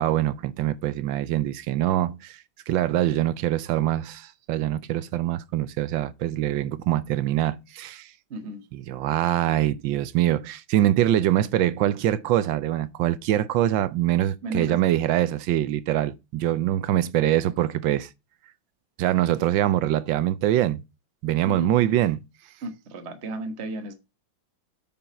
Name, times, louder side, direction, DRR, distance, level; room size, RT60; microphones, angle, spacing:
voice 1, 0.0-2.4 2.7-8.1 8.7-18.1 19.0-20.8 21.2-22.2, right 13 dB, 75° right, 1.2 m, -24 dB
voice 2, 8.3-8.6 14.4-14.9 21.4-21.7 22.6-23.9, right 2 dB, 35° right, 1.4 m, -33 dB
8.9 x 5.5 x 4.4 m
omnidirectional pair, 2.3 m